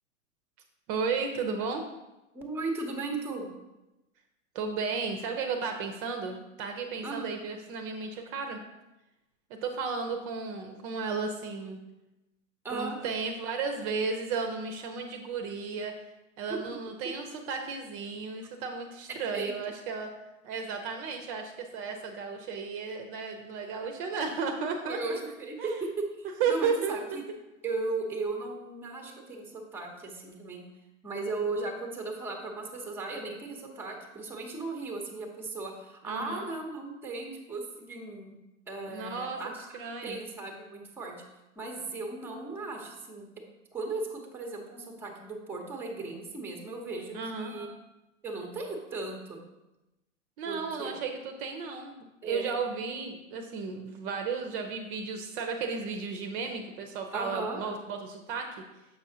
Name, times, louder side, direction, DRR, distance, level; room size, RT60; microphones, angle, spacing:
voice 1, 0.9-1.8 4.5-8.6 9.6-11.8 12.7-15.9 16.4-20.1 20.4-25.2 25.6-25.8 26.4-27.0 36.0-36.5 38.9-39.4 39.7-40.2 47.1-47.5 50.4-52.0 52.2-58.5, right 5 dB, 45° right, 5 dB, 0.7 m, -34 dB
voice 2, 2.3-3.5 7.0-7.3 12.6-13.0 16.5-16.6 19.1-19.5 24.9-25.9 26.2-27.2 27.6-30.6 31.0-38.3 38.7-41.1 41.6-43.3 43.7-47.7 48.2-49.4 50.5-50.9 52.2-52.5 57.1-57.7, right 3 dB, 5° right, 1 dB, 0.8 m, -36 dB
6.9 x 5.5 x 2.7 m, 0.99 s
hypercardioid pair, 120°, 39 cm